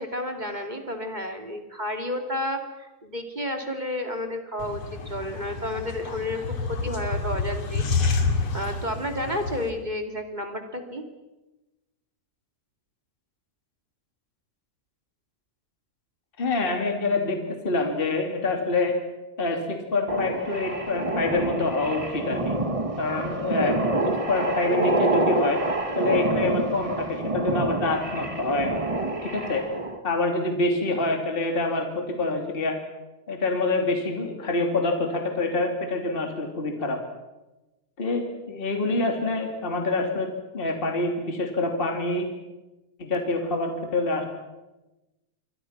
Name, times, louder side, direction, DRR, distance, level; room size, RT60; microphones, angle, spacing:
voice 1, 0.0-7.9 8.5-11.0, left 1 dB, 15° right, 5 dB, 2.2 m, -31 dB
sound 1, 4.6-9.7, left 4 dB, 55° left, 3.3 m, -28 dB
voice 2, 16.4-19.0 19.4-22.6 23.0-23.8 24.0-25.6 25.9-28.7 29.2-29.6 30.0-32.8 33.3-37.0 38.0-40.3 40.5-42.3 43.0-44.3, left 2 dB, 15° left, 3 dB, 3.1 m, -26 dB
sound 2, 20.1-30.0, right 2 dB, 35° right, 0.5 m, -27 dB
28.0 x 24.0 x 6.0 m, 1.1 s
omnidirectional pair, 3.7 m